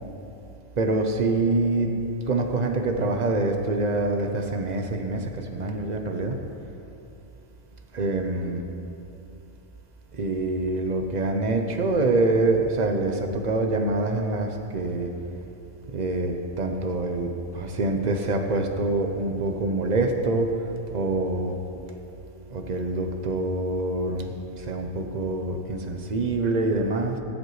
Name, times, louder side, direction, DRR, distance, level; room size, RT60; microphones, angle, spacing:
voice 1, 0.8-6.4 7.9-8.6 10.1-15.1 15.9-20.6 20.9-21.6 22.5-27.2, right 2 dB, 40° right, 4 dB, 0.7 m, -25 dB
17.5 x 7.8 x 3.2 m, 2.8 s
omnidirectional pair, 1.5 m